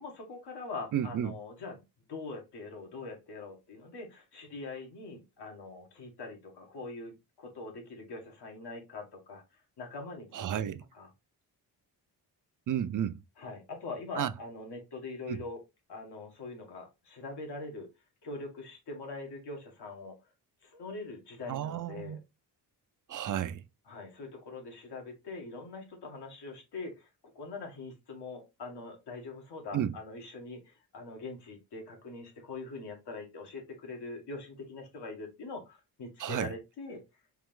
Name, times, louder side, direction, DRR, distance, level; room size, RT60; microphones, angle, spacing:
voice 1, 0.0-1.8 2.1-9.4 9.8-11.1 13.4-15.6 15.9-17.9 18.2-20.2 20.6-22.2 23.9-27.1 27.4-37.0, left 3 dB, 75° left, 2.1 m, -43 dB
voice 2, 0.9-1.3 10.3-10.8 12.7-13.2 14.2-14.3 15.3-15.4 21.5-22.2 23.1-23.6 29.7-29.9 36.2-36.5, right 10 dB, 50° right, 0.6 m, -32 dB
4.6 x 3.0 x 3.7 m
cardioid pair, 105°, 40 cm